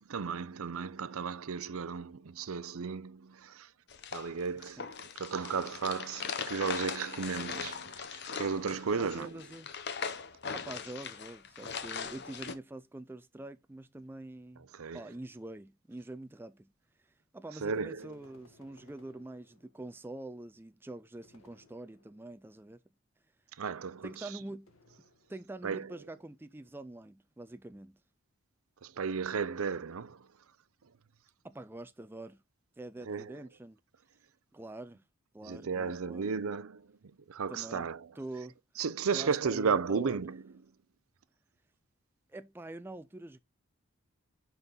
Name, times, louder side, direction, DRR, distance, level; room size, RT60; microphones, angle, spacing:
voice 1, 0.1-3.7 4.1-9.4 14.7-15.0 17.6-18.1 23.6-24.3 25.6-25.9 28.8-30.3 33.1-33.4 35.4-36.9 37.3-38.1 38.8-40.4, right 5 dB, 75° right, 0.5 m, -34 dB
sound 1, 3.9-12.5, left 6 dB, 50° left, 0.8 m, -40 dB
voice 2, 4.6-4.9 9.0-9.7 10.5-14.7 14.9-16.7 17.0-22.8 24.0-24.7 25.3-28.0 31.4-32.4 32.8-33.8 34.5-35.0 35.3-36.3 37.5-37.9 38.2-38.5 39.1-40.2 42.3-43.4, right 2 dB, 10° right, 0.3 m, -45 dB
sound 2, 18.0-20.0 21.2-22.4 24.7-25.6, left 2 dB, 70° left, 1.6 m, -63 dB
5.8 x 5.4 x 4.0 m
head